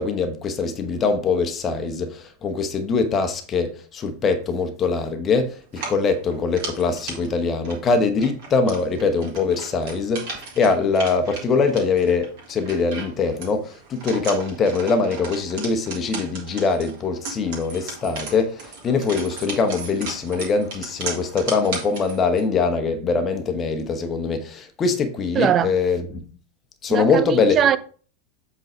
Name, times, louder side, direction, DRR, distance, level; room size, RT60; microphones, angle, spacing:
voice 1, 0.0-26.3 26.8-27.6, left 4 dB, 25° left, 1.1 m, -23 dB
sound 1, 5.7-22.5, right 4 dB, 50° right, 2.1 m, -36 dB
voice 2, 25.3-25.7 26.9-27.8, right 9 dB, 30° right, 0.4 m, -20 dB
7.9 x 3.9 x 4.4 m
figure-of-eight pair, 90°, 0 cm